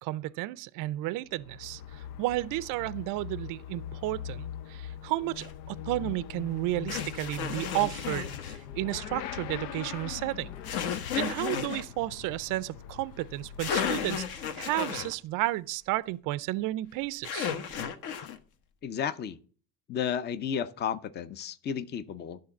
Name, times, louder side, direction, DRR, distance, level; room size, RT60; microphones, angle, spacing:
voice 1, 0.0-10.5 10.8-17.5, right 17 dB, 45° right, 0.5 m, -32 dB
Motorcycle / Accelerating revving vroom, 1.3-15.1, left 9 dB, 85° left, 0.8 m, -42 dB
sound 1, 5.4-5.5 6.9-8.6 10.6-11.8 13.3-13.4 13.6-15.1 17.2-18.4, left 8 dB, 50° left, 1.2 m, -33 dB
voice 2, 18.8-19.4 19.9-22.4, left 8 dB, 25° left, 0.5 m, -32 dB
11.5 x 3.8 x 5.9 m
supercardioid pair, 120°, 47 cm